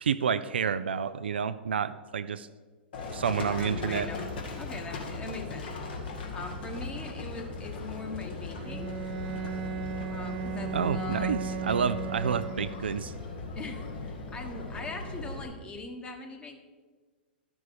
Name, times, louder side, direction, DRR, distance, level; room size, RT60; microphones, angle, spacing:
voice 1, 0.0-2.5 3.1-4.1 10.7-13.1, right 7 dB, 75° right, 13 dB, 0.4 m, -29 dB
Livestock farm animals working animals, 2.9-15.4, left 3 dB, 65° left, 1.9 m, -38 dB
voice 2, 3.6-4.3 4.6-5.7 6.3-8.9 10.1-11.9 13.5-16.6, left 2 dB, 15° left, 3 dB, 1.3 m, -41 dB
Bowed string instrument, 8.6-13.0, right 6 dB, 45° right, 1.1 m, -36 dB
12.0 x 6.3 x 4.7 m, 1.4 s
figure-of-eight pair, 105°, 6 cm